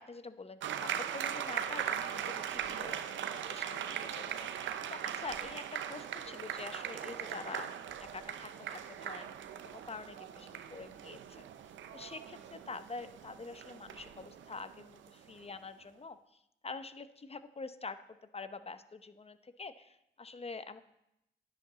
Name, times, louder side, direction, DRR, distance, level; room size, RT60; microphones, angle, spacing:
voice 1, 0.0-7.7 8.1-9.4 9.6-11.4 11.9-16.2 16.6-18.0 18.3-20.8, left 4 dB, 30° left, 12 dB, 0.7 m, -46 dB
sound 1, 0.6-15.6, right 9 dB, 85° right, 0.6 m, -40 dB
10.0 x 9.7 x 4.0 m, 0.85 s
supercardioid pair, 45°, 19 cm